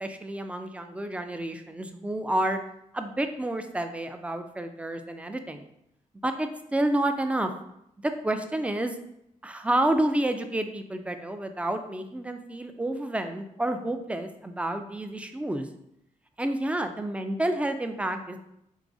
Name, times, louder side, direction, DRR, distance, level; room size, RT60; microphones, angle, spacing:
voice 1, 0.0-2.6 2.9-5.7 6.2-7.5 8.0-9.0 9.4-15.7 16.4-18.4, right 1 dB, 10° right, 7 dB, 0.3 m, -29 dB
4.8 x 3.0 x 2.6 m, 0.79 s
wide cardioid pair, 125°, 14 cm